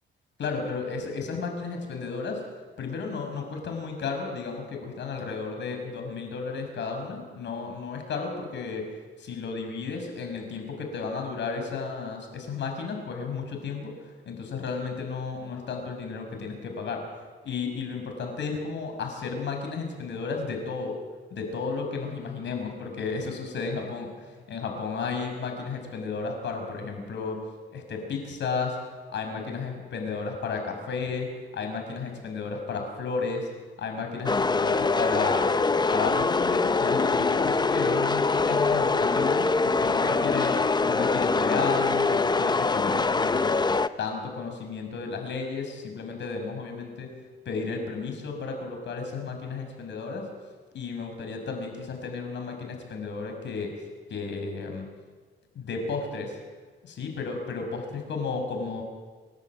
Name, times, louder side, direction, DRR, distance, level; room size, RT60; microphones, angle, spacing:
voice 1, 0.4-2.4 2.8-8.9 9.2-17.0 17.4-20.9 21.3-27.4 27.7-28.8 29.1-31.3 31.5-33.5 33.8-35.5 35.9-43.6 44.0-47.1 47.4-50.2 50.7-54.9 55.5-56.4 56.8-58.8, left 4 dB, 65° left, 4 dB, 5.9 m, -33 dB
sound 1, 34.3-43.9, left 4 dB, 20° left, 0.8 m, -24 dB
28.0 x 11.0 x 9.0 m, 1.4 s
cardioid pair, 90°, 20 cm